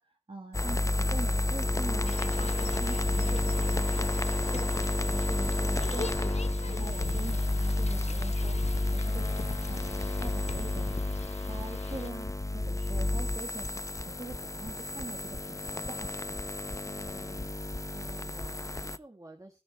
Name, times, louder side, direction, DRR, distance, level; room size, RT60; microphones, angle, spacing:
voice 1, 0.0-4.1 4.4-6.3 6.6-8.6 8.9-11.0 11.5-16.5, right 3 dB, 55° right, 3 dB, 2.0 m, -44 dB
sound 1, 0.5-19.0, left 2 dB, 30° left, 0.7 m, -30 dB
sound 2, 2.1-12.1, left 4 dB, 80° left, 1.0 m, -42 dB
voice 2, 16.6-17.4 17.9-19.6, right 2 dB, 30° right, 4 dB, 2.2 m, -51 dB
13.0 x 11.0 x 4.3 m, 0.30 s
wide cardioid pair, 50°, 11 cm